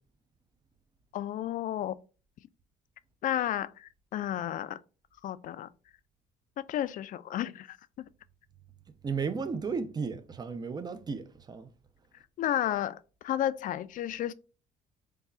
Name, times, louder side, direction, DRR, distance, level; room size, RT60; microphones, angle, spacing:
voice 1, 1.1-2.0 3.2-4.8 5.2-5.7 6.7-7.8 12.4-14.3, left 11 dB, 50° left, 0.4 m, -32 dB
voice 2, 9.0-11.7, right 5 dB, 25° right, 0.5 m, -34 dB
3.6 x 2.3 x 4.1 m
cardioid pair, 110°, 17 cm